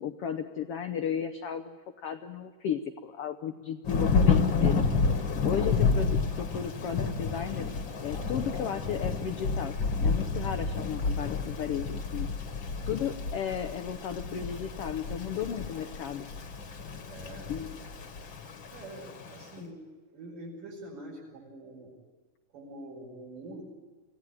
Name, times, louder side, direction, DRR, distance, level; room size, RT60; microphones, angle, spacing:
voice 1, 0.0-4.8 5.4-7.7 8.0-9.8 10.0-12.3 12.8-16.3 17.5-17.7 19.6-19.7, left 8 dB, 90° left, 8 dB, 1.3 m, -34 dB
Thunder / Rain, 3.8-19.4, left 4 dB, 45° left, 1.9 m, -30 dB
voice 2, 17.1-17.6 18.7-19.8 20.1-21.9 22.5-23.6, right 2 dB, 75° right, -4 dB, 7.3 m, -45 dB
25.5 x 17.0 x 9.8 m, 1.3 s
omnidirectional pair, 3.9 m